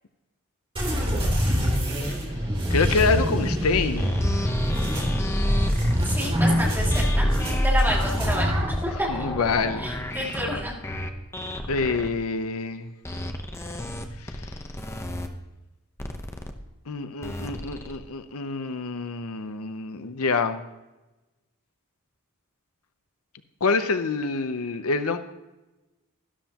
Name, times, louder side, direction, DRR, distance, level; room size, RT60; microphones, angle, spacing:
sound 1, 0.8-8.8, equal, 25° right, 3.5 m, -24 dB
voice 1, 2.7-4.3 8.9-9.9 10.2-10.4 11.7-12.9 14.2-14.5 16.9-20.6 23.6-25.2, left 4 dB, 75° left, 10 dB, 0.7 m, -27 dB
sound 2, 4.0-12.1 13.0-15.3 16.0-16.5 17.2-18.0, left 1 dB, 10° left, 0.8 m, -33 dB
voice 2, 6.0-7.3 7.6-9.3 9.8-10.8, equal, 10° right, -3 dB, 2.5 m, -29 dB
12.5 x 12.0 x 2.9 m, 1.0 s
head